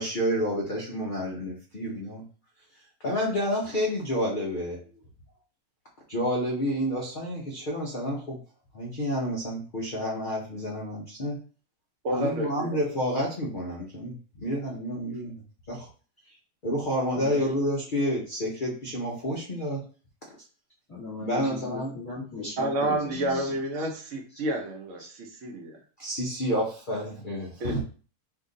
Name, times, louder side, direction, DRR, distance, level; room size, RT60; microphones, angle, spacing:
voice 1, 0.0-2.2 3.0-4.8 6.1-8.4 8.7-11.4 12.1-15.4 15.7-15.9 16.6-19.8 21.2-21.9 26.0-27.8, equal, 75° left, -2 dB, 0.4 m, -29 dB
voice 2, 12.0-12.8 22.6-25.8 27.6-27.7, right 1 dB, 55° right, 2 dB, 0.9 m, -30 dB
voice 3, 17.2-17.5 20.9-23.5 23.8-23.9 25.0-25.1, left 3 dB, 15° left, -8 dB, 1.3 m, -38 dB
2.8 x 2.5 x 3.7 m, 0.39 s
omnidirectional pair, 1.8 m